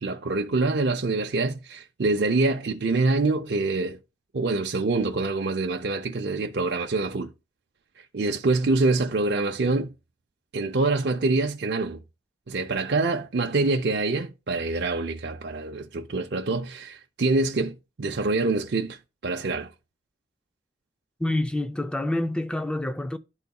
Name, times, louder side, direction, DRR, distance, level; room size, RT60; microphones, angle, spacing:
voice 1, 0.0-4.0 4.3-7.3 8.1-9.9 10.5-12.0 12.5-19.0 19.2-19.7, right 3 dB, 60° right, 0.5 m, -25 dB
voice 2, 21.2-23.2, left 1 dB, 5° left, 0.4 m, -27 dB
11.5 x 4.0 x 2.3 m
head